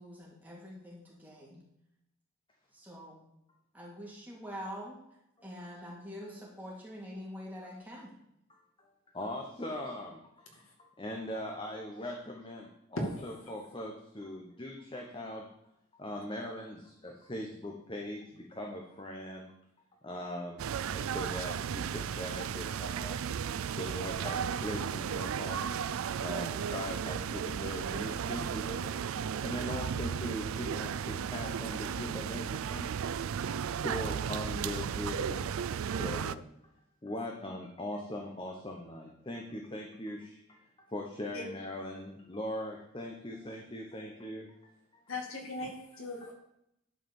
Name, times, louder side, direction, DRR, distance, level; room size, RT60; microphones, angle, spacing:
voice 1, 0.0-1.6 2.7-3.2 3.7-5.0 5.4-8.1, equal, 10° right, -4 dB, 2.6 m, -45 dB
voice 2, 9.1-10.6 11.0-15.5 16.0-19.5 20.0-29.0 29.3-36.5 37.0-44.5, left 1 dB, 25° left, 1 dB, 1.0 m, -41 dB
sound 1, 20.6-36.3, right 7 dB, 75° right, 0.4 m, -35 dB
voice 3, 45.1-46.3, left 2 dB, 70° left, 1 dB, 2.5 m, -40 dB
11.0 x 4.9 x 7.1 m, 0.81 s
head